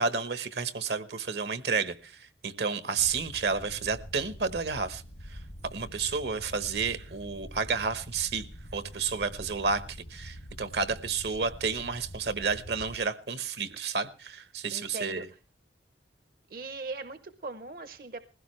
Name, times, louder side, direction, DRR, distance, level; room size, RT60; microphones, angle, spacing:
voice 1, 0.0-5.0 5.3-5.4 5.7-8.4 8.7-15.3, right 5 dB, 70° right, 13 dB, 1.1 m, -31 dB
sound 1, 3.0-13.0, equal, 90° left, 2.3 m, -45 dB
voice 2, 14.7-15.3 16.5-18.2, right 3 dB, 55° right, 11 dB, 0.7 m, -39 dB
20.5 x 16.0 x 3.2 m, 0.35 s
head